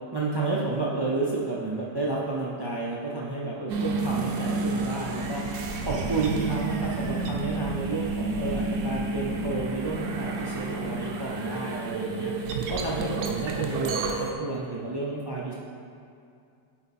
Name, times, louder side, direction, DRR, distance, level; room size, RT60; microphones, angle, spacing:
voice 1, 0.1-5.4 5.8-12.3 12.7-15.5, right 3 dB, 40° right, -4 dB, 0.3 m, -31 dB
sound 1, 3.7-14.3, right 3 dB, 70° right, 0.9 m, -30 dB
8.8 x 3.5 x 4.1 m, 2.4 s
omnidirectional pair, 1.4 m